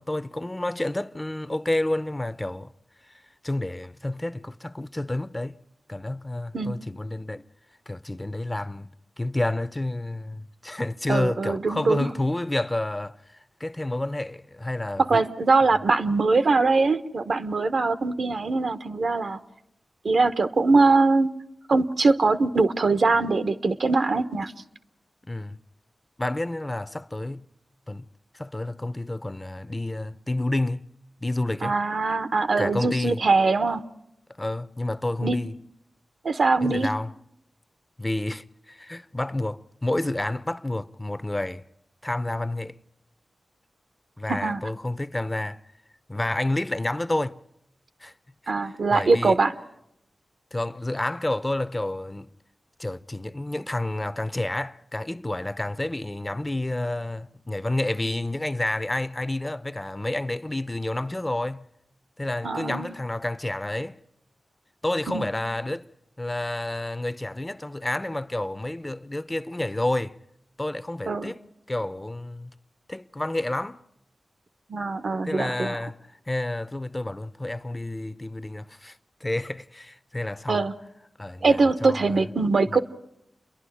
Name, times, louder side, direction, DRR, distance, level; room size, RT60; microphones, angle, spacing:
voice 1, 0.0-2.7 3.1-5.5 5.9-7.4 7.9-8.9 9.2-15.2 25.3-25.6 26.2-27.5 27.9-28.0 28.3-30.9 31.2-31.8 32.6-33.2 34.4-35.5 36.6-37.1 38.0-41.6 42.0-42.8 44.2-45.6 46.1-47.4 48.0-48.1 48.9-49.4 50.5-52.3 52.8-61.7 62.2-64.0 64.8-65.9 66.2-70.2 70.6-71.4 71.7-72.5 72.9-73.8 75.2-76.0 76.3-80.7 81.2-82.2 82.7-82.8, left 1 dB, 25° left, 0.8 m, -29 dB
voice 2, 11.1-12.1 15.0-19.4 20.0-21.3 21.7-24.5 31.6-33.8 35.2-35.4 36.2-36.9 44.3-44.6 48.5-49.5 62.4-62.9 65.1-65.2 71.1-71.3 74.7-75.8 80.5-80.7 81.4-82.8, right 3 dB, 70° right, 1.0 m, -22 dB
29.5 x 11.0 x 9.9 m
cardioid pair, 45°, 0 cm